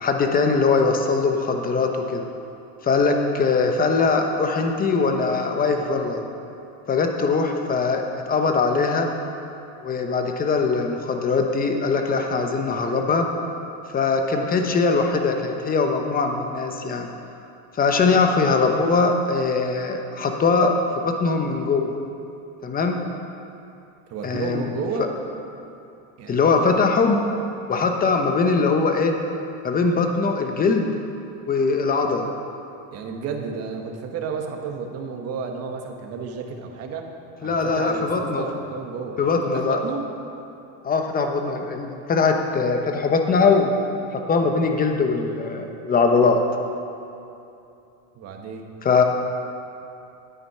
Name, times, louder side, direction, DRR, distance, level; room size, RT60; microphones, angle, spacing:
voice 1, 0.0-2.3 2.8-6.2 6.9-9.1 9.8-13.3 13.9-17.1 17.7-20.8 21.0-22.0 22.6-23.0 24.2-24.8 26.3-27.2 27.7-29.1 29.6-30.9 31.5-32.3 37.4-38.4 39.2-39.8 40.8-43.7 44.1-46.4 48.8-49.0, left 4 dB, 20° left, 4 dB, 1.0 m, -21 dB
voice 2, 24.1-25.1 26.2-26.4 32.9-37.1 37.4-39.2 39.5-40.0 48.1-48.6, right 5 dB, 40° right, 3 dB, 1.3 m, -32 dB
9.7 x 8.8 x 5.6 m, 2.8 s
supercardioid pair, 135°, 39 cm